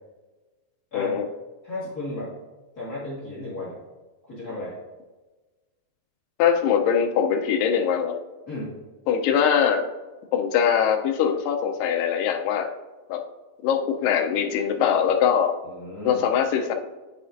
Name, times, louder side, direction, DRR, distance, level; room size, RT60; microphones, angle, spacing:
voice 1, 0.9-1.3 6.4-8.2 9.1-9.9 10.3-12.7 13.1-13.2 13.6-15.6 16.1-16.7, left 8 dB, 90° left, 4 dB, 2.0 m, -22 dB
voice 2, 1.6-2.3 2.8-3.8 4.3-4.8 8.5-8.8 15.7-16.2, left 1 dB, 55° left, -7 dB, 1.0 m, -34 dB
9.9 x 5.1 x 2.5 m, 1.2 s
omnidirectional pair, 4.5 m